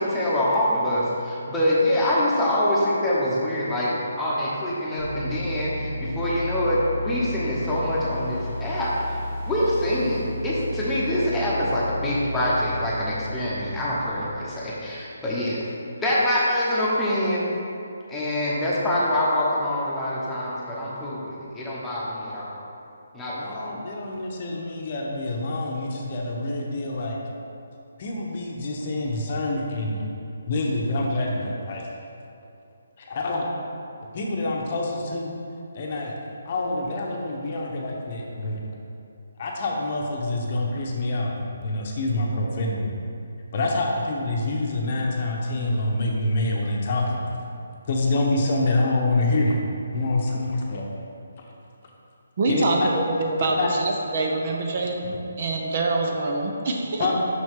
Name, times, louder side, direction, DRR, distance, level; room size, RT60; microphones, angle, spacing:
voice 1, 0.0-8.9 9.5-15.6 16.0-17.5 18.1-22.6 23.1-23.7, left 1 dB, 5° left, -9 dB, 1.1 m, -25 dB
sound 1, 5.0-14.8, left 1 dB, 10° right, 1.3 m, -33 dB
voice 2, 23.3-27.2 28.0-30.1 30.5-31.9 33.0-33.5 34.1-35.3 35.7-36.1 36.4-38.6 39.4-42.9 43.5-47.2 47.9-49.6 49.9-50.9 51.4-51.5 52.5-52.9 53.4-53.7 57.0-57.1, left 2 dB, 40° left, -1 dB, 0.9 m, -26 dB
voice 3, 52.4-52.8 53.2-57.1, right 2 dB, 45° right, 1 dB, 0.7 m, -25 dB
6.2 x 5.8 x 3.7 m, 2.5 s
hypercardioid pair, 165°, 0 cm